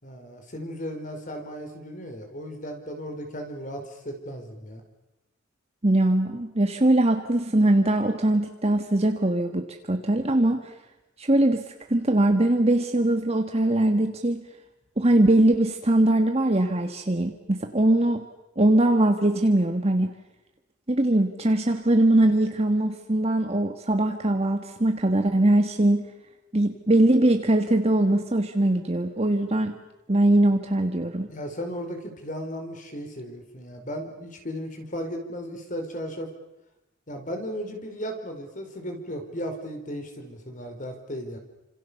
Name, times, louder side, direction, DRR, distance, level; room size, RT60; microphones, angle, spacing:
voice 1, 0.0-4.8 31.3-36.3 37.1-41.4, equal, 40° left, 5 dB, 4.8 m, -35 dB
voice 2, 5.8-10.7 11.2-11.6 11.9-14.4 15.0-18.2 18.6-20.1 20.9-26.1 26.5-29.7 30.1-31.3, right 1 dB, 30° right, 5 dB, 1.6 m, -21 dB
29.5 x 26.5 x 7.0 m, 0.97 s
head